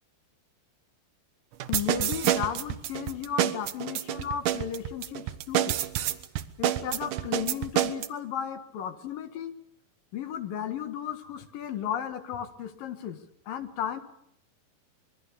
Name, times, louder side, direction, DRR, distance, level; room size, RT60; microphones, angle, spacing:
sound 1, 1.6-8.1, right 12 dB, 70° right, 2.4 m, -28 dB
voice 1, 1.7-5.8 6.6-9.5 10.1-13.2 13.5-14.0, left 9 dB, 70° left, 10 dB, 3.4 m, -34 dB
25.5 x 22.0 x 6.9 m, 0.73 s
omnidirectional pair, 4.2 m